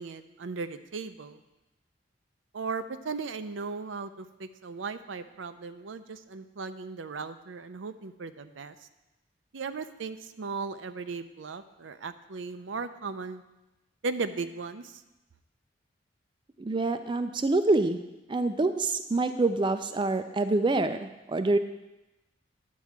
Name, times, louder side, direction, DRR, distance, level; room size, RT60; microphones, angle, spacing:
voice 1, 0.0-1.4 2.5-8.7 9.5-13.4 14.0-15.0, right 4 dB, 85° right, 10 dB, 0.6 m, -37 dB
voice 2, 16.6-18.0 18.3-21.6, right 2 dB, 25° right, 9 dB, 0.4 m, -26 dB
10.5 x 4.6 x 7.3 m, 0.98 s
head